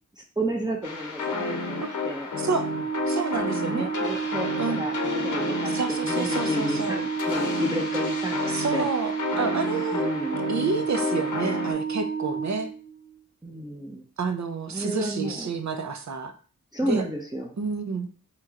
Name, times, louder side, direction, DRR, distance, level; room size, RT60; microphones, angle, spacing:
voice 1, 0.4-2.3 3.7-8.9 9.9-10.4 13.4-14.0 14.7-15.5 16.7-17.5, equal, 10° right, -1 dB, 0.8 m, -31 dB
sound 1, 0.8-11.7, left 4 dB, 60° left, 0.8 m, -31 dB
Organ, 2.3-13.2, right 6 dB, 25° left, 0.8 m, -31 dB
voice 2, 3.1-3.9 4.6-4.8 5.7-7.0 8.5-10.1 10.5-12.7 14.2-16.3 16.8-17.0 17.6-18.1, right 4 dB, 55° right, 7 dB, 0.7 m, -29 dB
3.0 x 2.9 x 3.6 m, 0.40 s
cardioid pair, 40°, 35 cm